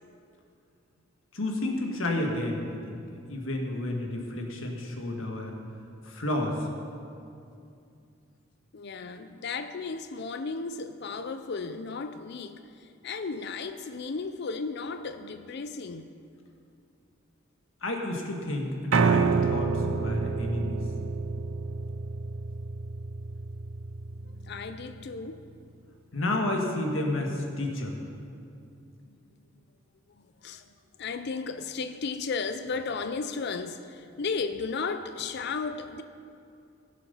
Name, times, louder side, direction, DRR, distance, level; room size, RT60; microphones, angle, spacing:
voice 1, 1.3-3.0 3.3-5.6 6.0-6.6 17.8-20.8 26.1-28.0, left 1 dB, 80° left, 1.6 m, -31 dB
voice 2, 8.7-16.1 24.4-25.4 29.1-29.2 30.2-30.7 31.0-36.0, left 4 dB, 55° left, 0.5 m, -34 dB
Piano, 18.9-25.1, right 4 dB, 85° right, 0.5 m, -29 dB
16.0 x 7.4 x 5.6 m
head